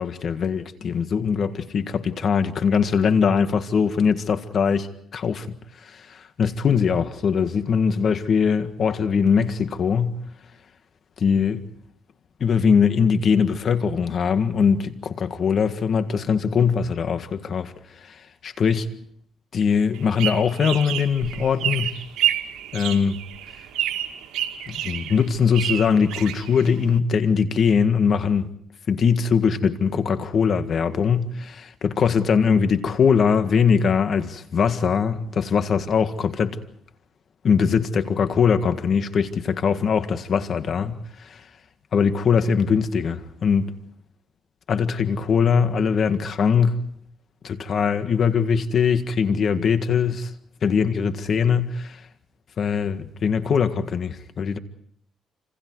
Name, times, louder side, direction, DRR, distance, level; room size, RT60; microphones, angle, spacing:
voice 1, 0.0-10.2 11.2-11.6 12.4-18.9 19.5-21.9 22.7-23.2 24.7-28.5 28.9-36.6 37.4-41.5 41.9-43.7 44.7-46.8 47.4-50.3 50.6-52.1 52.6-54.6, left 6 dB, 55° left, 1.7 m, -21 dB
sound 1, 19.9-27.0, right 11 dB, 90° right, 2.2 m, -29 dB
29.0 x 27.0 x 4.7 m
cardioid pair, 90°, 0 cm